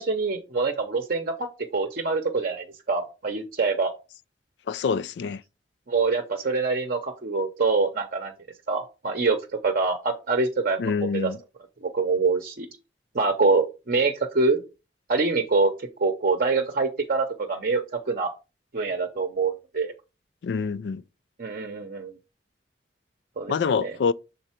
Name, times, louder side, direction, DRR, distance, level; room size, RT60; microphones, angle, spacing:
voice 1, 0.0-1.5 1.7-3.9 5.9-8.3 8.7-9.4 9.6-11.3 11.8-12.7 13.1-14.6 15.1-18.3 18.7-19.9 21.4-22.2 23.4-23.6 23.8-23.9, right 4 dB, 55° right, 0.7 m, -25 dB
voice 2, 4.7-5.4 10.8-11.4 20.4-21.0 23.5-24.1, left 5 dB, 75° left, 0.3 m, -26 dB
6.5 x 3.9 x 4.3 m
head